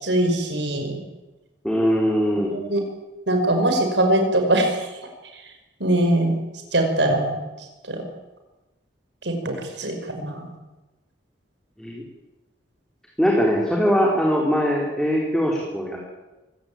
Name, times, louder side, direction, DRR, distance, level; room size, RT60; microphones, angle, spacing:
voice 1, 0.0-1.0 2.4-2.8 3.3-4.8 5.8-6.4 6.7-7.3 7.9-8.0 9.2-10.5, right 1 dB, 70° right, 5 dB, 5.6 m, -22 dB
voice 2, 1.6-2.5 11.8-12.0 13.2-16.0, equal, 5° left, -2 dB, 3.8 m, -21 dB
24.0 x 17.5 x 8.7 m, 1.1 s
head